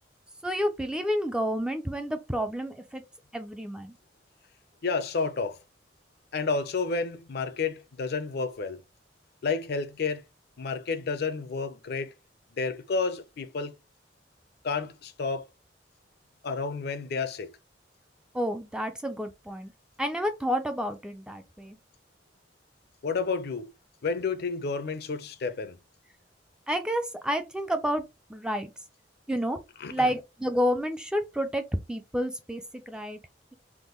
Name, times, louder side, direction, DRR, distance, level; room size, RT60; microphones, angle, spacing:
voice 1, 0.4-3.0 3.3-4.0 18.3-19.7 20.0-21.8 26.7-28.7 29.3-29.6 29.9-33.2, equal, 5° right, 0.3 m, -30 dB
voice 2, 4.8-5.6 6.3-8.8 9.4-10.2 10.6-12.1 12.6-13.7 14.6-15.5 16.4-17.5 23.0-23.7 24.0-25.8 29.8-30.1, left 4 dB, 60° left, 0.5 m, -30 dB
3.5 x 2.2 x 3.0 m
head